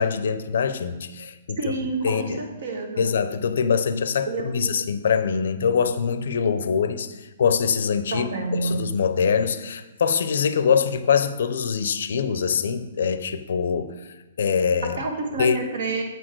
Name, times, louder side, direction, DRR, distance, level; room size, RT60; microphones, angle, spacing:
voice 1, 0.0-1.6 2.0-2.5 3.0-8.3 8.5-13.9 14.4-15.0 15.4-15.6, left 6 dB, 70° left, 11 dB, 0.5 m, -23 dB
voice 2, 1.6-3.1 4.3-4.7 8.1-8.8 14.8-16.0, right 3 dB, 65° right, 3 dB, 1.4 m, -29 dB
8.0 x 4.3 x 4.5 m, 1.1 s
hypercardioid pair, 165°, 0 cm